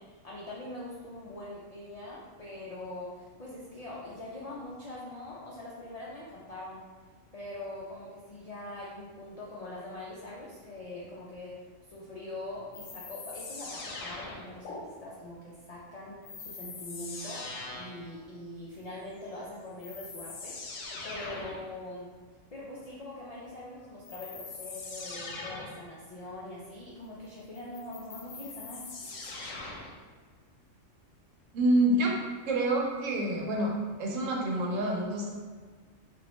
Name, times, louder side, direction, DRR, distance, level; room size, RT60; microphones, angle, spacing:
voice 1, 0.0-6.9 7.3-11.6 11.9-17.4 17.7-20.8 21.0-22.1 22.5-29.2, left 1 dB, 70° left, -6 dB, 0.3 m, -43 dB
sound 1, 12.7-14.8 16.2-18.1 19.3-19.4 19.8-21.7 24.0-25.8 27.5-30.0, left 3 dB, 85° left, 1.0 m, -42 dB
voice 2, 31.5-32.2 32.4-33.7 34.0-35.3, right 1 dB, 80° right, -1 dB, 1.0 m, -27 dB
3.0 x 2.5 x 3.0 m, 1.5 s
omnidirectional pair, 1.3 m